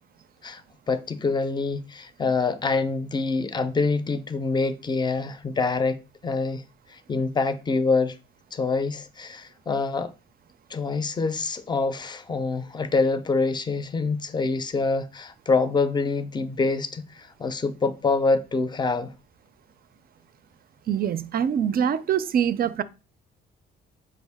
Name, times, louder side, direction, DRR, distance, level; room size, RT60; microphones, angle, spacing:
voice 1, 0.9-6.6 6.9-8.2 8.5-10.1 10.7-19.1, left 4 dB, 20° left, 0.5 m, -26 dB
voice 2, 20.9-22.8, right 8 dB, 50° right, 0.4 m, -24 dB
4.6 x 2.5 x 3.4 m
cardioid pair, 90°, 20 cm